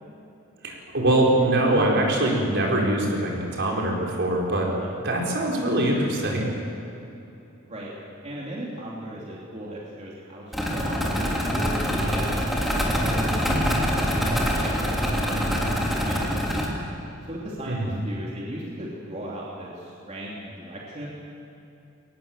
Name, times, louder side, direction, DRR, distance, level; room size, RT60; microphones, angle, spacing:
voice 1, 0.6-4.7 5.0-6.5 17.7-17.9, right 1 dB, 60° right, -1 dB, 4.6 m, -23 dB
voice 2, 8.2-12.3 12.7-16.4 17.3-21.1, right 1 dB, 35° right, -5 dB, 3.1 m, -37 dB
sound 1, 10.5-16.7, equal, ahead, 3.2 m, -25 dB
22.5 x 19.0 x 7.5 m, 2.9 s
head